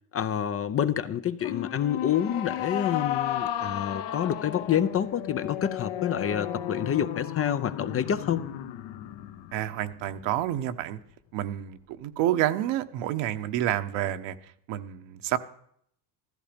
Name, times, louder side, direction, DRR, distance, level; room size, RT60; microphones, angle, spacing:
voice 1, 0.1-8.4, left 9 dB, 30° left, 0.6 m, -28 dB
sound 1, 1.4-10.8, left 11 dB, 65° left, 1.3 m, -34 dB
voice 2, 9.5-11.0 11.3-14.4 14.7-15.4, right 12 dB, 65° right, 1.2 m, -29 dB
15.0 x 14.0 x 5.2 m
supercardioid pair, 120°, 47 cm